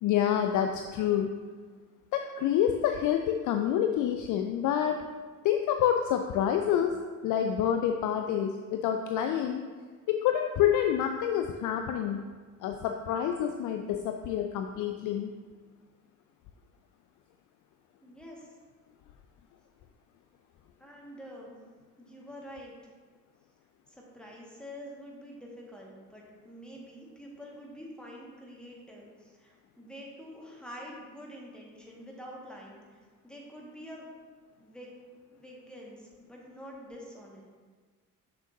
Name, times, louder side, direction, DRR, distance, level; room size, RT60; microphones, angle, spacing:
voice 1, 0.0-1.3 2.1-5.0 5.4-7.0 7.2-9.7 10.1-12.2 12.6-15.3, left 9 dB, 45° left, 5 dB, 0.5 m, -27 dB
voice 2, 18.0-18.5 20.8-21.5 22.0-22.7 23.9-34.1 34.6-37.4, equal, ahead, -3 dB, 1.7 m, -47 dB
6.9 x 6.5 x 2.7 m, 1.5 s
figure-of-eight pair, 50°, 44 cm